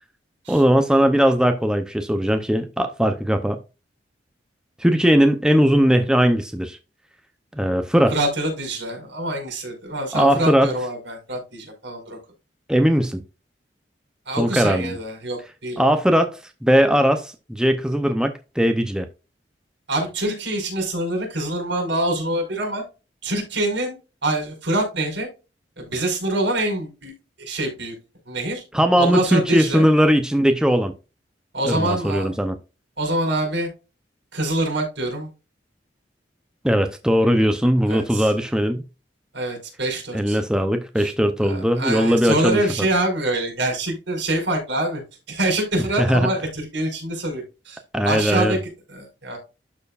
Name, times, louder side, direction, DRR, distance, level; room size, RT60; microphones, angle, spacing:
voice 1, 0.5-3.6 4.8-6.8 7.6-8.1 10.1-10.7 12.7-13.2 14.4-15.0 15.8-19.1 28.7-30.9 31.7-32.6 36.6-38.8 40.1-42.6 46.0-46.3 47.9-48.6, equal, 5° right, 0.6 m, -19 dB
voice 2, 8.1-12.2 14.3-15.8 19.9-22.8 23.2-24.0 24.2-25.3 25.8-27.1 27.4-28.0 28.3-28.6 29.0-29.8 31.5-32.3 33.0-33.7 34.3-35.3 37.9-38.3 39.3-40.4 41.0-41.1 41.4-45.0 45.3-48.6 48.9-49.4, right 1 dB, 75° right, 4.7 m, -25 dB
12.0 x 4.4 x 2.4 m
head